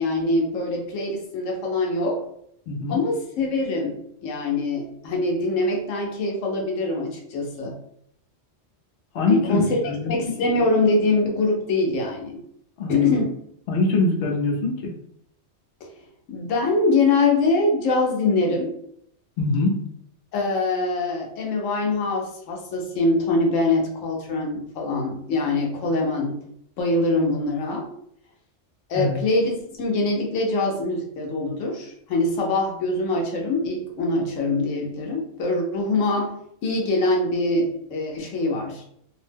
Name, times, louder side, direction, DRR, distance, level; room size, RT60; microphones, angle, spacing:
voice 1, 0.0-2.2 2.9-7.8 9.3-9.8 10.1-12.4 12.9-13.3 15.8-15.9 16.3-18.7 20.3-26.4 26.8-27.9 28.9-29.5 29.8-36.3 36.6-38.8, left 2 dB, 90° left, 0 dB, 1.0 m, -23 dB
voice 2, 2.7-3.0 9.1-10.3 12.8-13.2 13.7-14.9 19.4-19.8 28.9-29.2, left 2 dB, 65° left, -1 dB, 0.9 m, -23 dB
2.7 x 2.1 x 3.2 m, 0.72 s
omnidirectional pair, 1.3 m